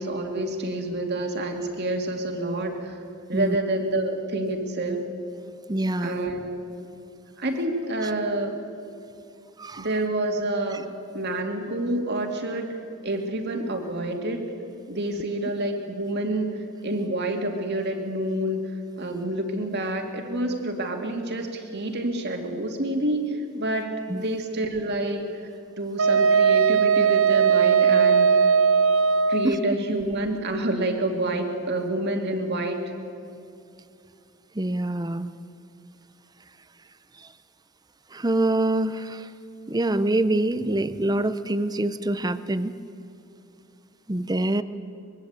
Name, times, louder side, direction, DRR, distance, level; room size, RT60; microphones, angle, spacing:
voice 1, 0.0-3.0 3.3-5.0 6.0-6.5 7.4-8.5 9.8-12.8 13.0-14.5 14.9-18.7 19.0-25.2 25.8-28.5 29.3-32.8, right 1 dB, 50° right, 4 dB, 2.5 m, -28 dB
voice 2, 5.7-6.2 9.6-9.9 24.1-24.2 29.4-29.6 34.5-35.3 37.2-37.3 38.1-39.3 39.7-42.7 44.1-44.6, right 1 dB, 20° right, 13 dB, 0.7 m, -25 dB
Wind instrument woodwind instrument, 26.0-29.6, right 6 dB, 65° right, 1.0 m, -19 dB
24.0 x 22.0 x 8.3 m, 2.6 s
head